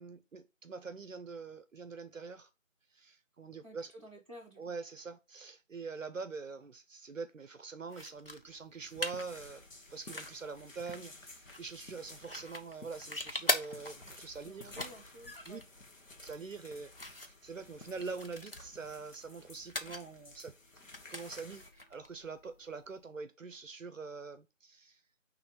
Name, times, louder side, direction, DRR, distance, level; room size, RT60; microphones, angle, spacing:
voice 1, 0.0-2.5 2.9-4.1 4.6-9.6 9.9-14.7 15.5-15.6 16.2-25.0, right 4 dB, 75° right, 0.7 m, -44 dB
voice 2, 3.6-4.7 14.4-15.6, equal, 25° right, 1.6 m, -52 dB
sound 1, 7.9-23.0, left 1 dB, 45° left, 0.7 m, -43 dB
sound 2, 8.8-21.7, left 2 dB, 80° left, 1.6 m, -54 dB
5.9 x 3.2 x 4.9 m
figure-of-eight pair, 175°, 39 cm